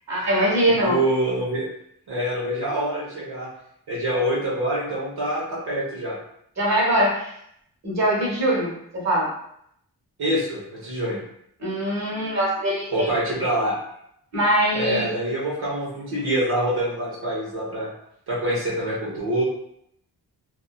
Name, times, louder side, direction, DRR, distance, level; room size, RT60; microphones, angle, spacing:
voice 1, 0.1-1.0 6.6-7.3 7.8-9.3 11.6-13.2 14.3-15.1, right 1 dB, 45° right, -5 dB, 1.2 m, -22 dB
voice 2, 0.8-1.7 2.1-3.5 3.9-6.2 10.2-11.2 12.9-13.8 14.7-17.9 18.3-19.4, right 1 dB, 75° right, -7 dB, 0.9 m, -25 dB
2.6 x 2.3 x 2.2 m, 0.72 s
cardioid pair, 65°, 38 cm